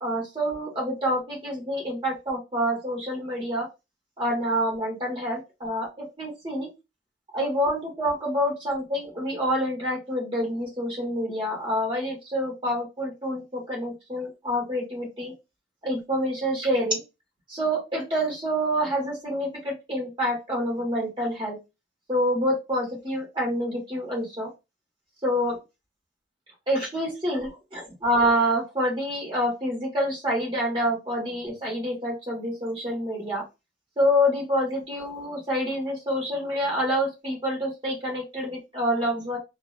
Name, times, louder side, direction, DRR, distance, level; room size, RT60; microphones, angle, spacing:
voice 1, 0.0-3.7 4.2-6.7 7.3-15.3 15.8-17.0 17.5-21.6 22.1-24.5 25.2-25.6 26.7-33.4 34.0-39.4, equal, 25° right, -2 dB, 1.3 m, -27 dB
2.7 x 2.1 x 2.4 m, 0.24 s
head